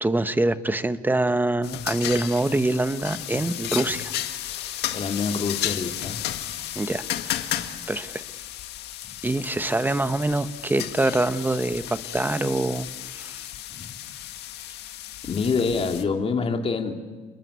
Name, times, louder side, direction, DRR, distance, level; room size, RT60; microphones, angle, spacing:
voice 1, 0.0-4.1 4.6-4.7 6.7-7.4 7.9-8.2 9.2-13.4, right 2 dB, 10° right, 11 dB, 1.1 m, -25 dB
sound 1, 1.6-16.0, left 12 dB, 80° left, 1.9 m, -33 dB
voice 2, 4.9-6.4 9.0-9.1 13.7-13.9 15.3-16.9, left 5 dB, 35° left, 4 dB, 3.0 m, -26 dB
29.5 x 22.0 x 8.3 m, 1.3 s
cardioid pair, 110°, 17 cm